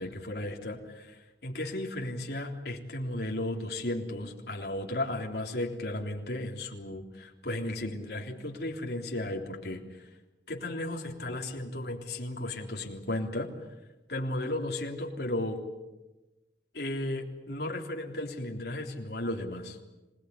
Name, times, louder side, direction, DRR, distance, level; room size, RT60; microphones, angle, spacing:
voice 1, 0.0-9.8 10.5-13.5 14.1-15.6 16.7-19.8, left 1 dB, 60° left, 2 dB, 3.5 m, -34 dB
26.5 x 18.5 x 9.8 m, 1.1 s
head